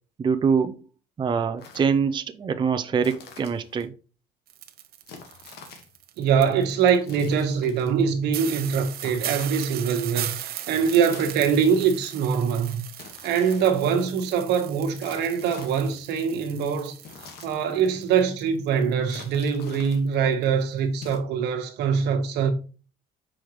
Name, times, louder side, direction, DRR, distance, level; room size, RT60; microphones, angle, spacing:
voice 1, 0.2-0.8 1.2-3.9, right 6 dB, 25° right, 0.5 m, -24 dB
sound 1, 1.6-2.0 3.0-3.9 5.1-6.0 7.0-8.0 9.0-9.8 11.0-11.8 13.0-14.0 15.0-16.1 17.0-17.9 19.0-20.0 21.0-21.2, left 5 dB, 70° left, 1.6 m, -46 dB
Household - Kitchen - Frying Pan Sizzle, 4.5-7.1 7.7-7.8 8.0-8.1 8.3-18.4 18.7-19.6 19.9-20.1 20.4-20.6, right 12 dB, 65° right, 0.7 m, -38 dB
voice 2, 6.2-12.8 13.2-17.0 17.4-22.5, right 7 dB, 85° right, 1.3 m, -23 dB
6.3 x 4.9 x 3.1 m
cardioid pair, 110°, 17 cm